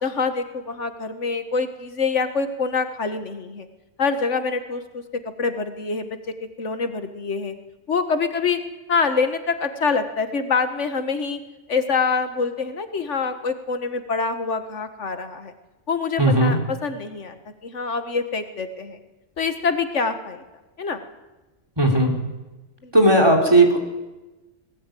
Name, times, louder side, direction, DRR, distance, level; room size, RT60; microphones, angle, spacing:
voice 1, 0.0-3.7 4.0-5.0 5.4-7.5 7.9-8.6 8.9-11.4 11.7-15.5 15.9-19.0 19.4-20.4 20.8-21.0 22.8-22.9, left 4 dB, 70° left, 9 dB, 1.8 m, -25 dB
voice 2, 16.2-16.6 21.8-22.1 22.9-23.8, right 1 dB, 20° right, 3 dB, 3.7 m, -16 dB
19.0 x 19.0 x 9.2 m, 1.1 s
omnidirectional pair, 1.3 m